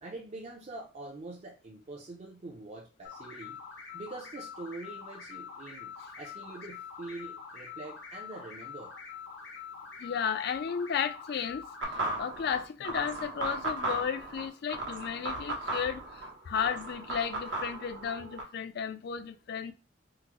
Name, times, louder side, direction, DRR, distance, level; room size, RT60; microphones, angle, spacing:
voice 1, 0.0-3.6 3.9-9.0, right 2 dB, 35° right, 0.5 m, -44 dB
sound 1, 3.0-11.8, left 6 dB, 80° left, 1.0 m, -45 dB
voice 2, 10.0-19.7, left 7 dB, 60° left, 0.3 m, -34 dB
sound 2, 11.8-18.4, right 2 dB, 85° right, 1.0 m, -36 dB
3.7 x 2.0 x 2.9 m
head